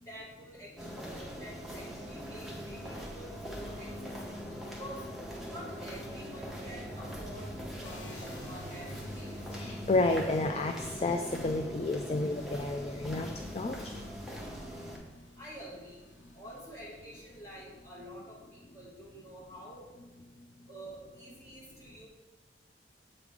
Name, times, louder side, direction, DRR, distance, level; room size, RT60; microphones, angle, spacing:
voice 1, 0.0-5.0 5.5-8.9 9.1-9.4 15.4-16.0 16.3-19.9 20.7-22.1, equal, 15° left, -7 dB, 2.1 m, -48 dB
sound 1, 0.8-15.0, equal, ahead, 1.0 m, -42 dB
sound 2, 7.8-17.7, left 2 dB, 85° left, 1.3 m, -57 dB
voice 2, 9.5-13.9, left 2 dB, 35° left, 5 dB, 0.3 m, -31 dB
7.9 x 3.7 x 4.8 m, 1.2 s
head